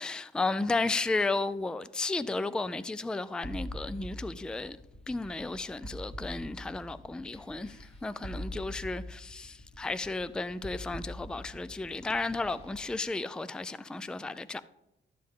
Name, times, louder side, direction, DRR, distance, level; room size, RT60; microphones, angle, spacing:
voice 1, 0.0-4.8 5.1-14.6, left 3 dB, 5° left, 0.4 m, -33 dB
sound 1, 3.4-13.0, equal, 30° left, 1.7 m, -43 dB
12.0 x 7.6 x 3.6 m
cardioid pair, 90°, 20 cm